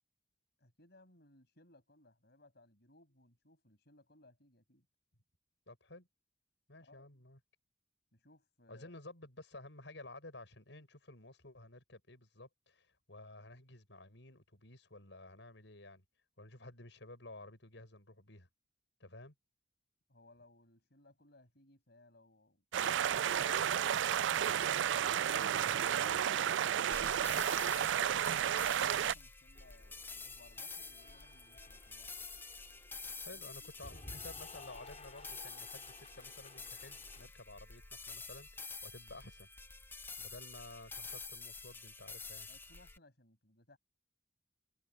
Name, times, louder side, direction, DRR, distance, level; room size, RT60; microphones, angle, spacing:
voice 1, 0.6-4.9 6.8-7.2 8.1-8.9 20.1-23.9 28.7-32.2 33.3-34.0 42.4-43.8, left 2 dB, 60° left, 7.5 m, -65 dB
voice 2, 5.7-6.1 6.7-7.4 8.7-16.0 16.4-18.5 19.0-19.3 25.8-26.2 33.2-39.5 40.2-42.5, left 2 dB, 75° left, 6.6 m, -53 dB
sound 1, 22.7-29.1, right 9 dB, 85° right, 0.4 m, -32 dB
sound 2, 26.9-43.0, left 4 dB, 10° left, 0.6 m, -48 dB
Cheering / Applause, 29.5-37.3, left 2 dB, 40° left, 3.0 m, -56 dB
head